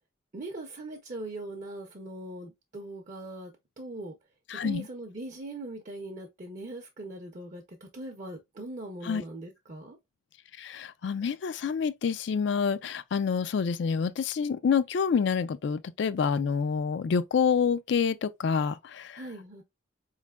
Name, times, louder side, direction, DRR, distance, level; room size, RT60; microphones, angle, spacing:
voice 1, 0.3-3.5 3.8-4.2 4.5-7.6 7.9-10.0 19.1-19.6, right 1 dB, 40° right, 0.5 m, -40 dB
voice 2, 4.5-4.9 9.0-9.2 10.6-19.2, left 6 dB, 55° left, 0.3 m, -27 dB
4.2 x 3.2 x 2.2 m
head